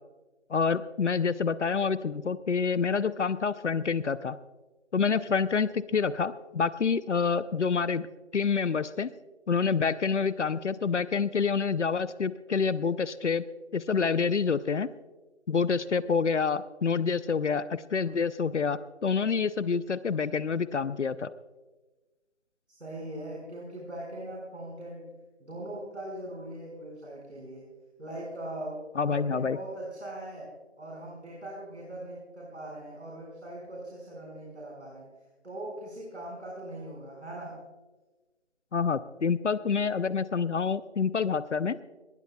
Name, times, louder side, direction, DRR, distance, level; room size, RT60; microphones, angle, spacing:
voice 1, 0.5-4.4 4.9-8.1 8.3-9.1 9.5-13.4 13.7-14.9 15.5-21.3 29.0-29.6 38.7-41.8, left 5 dB, 75° left, 16 dB, 0.6 m, -27 dB
voice 2, 22.7-27.6 28.0-35.1 35.4-37.6, right 1 dB, 70° right, -2 dB, 5.0 m, -41 dB
20.5 x 19.0 x 2.3 m, 1.2 s
figure-of-eight pair, 175°, 36 cm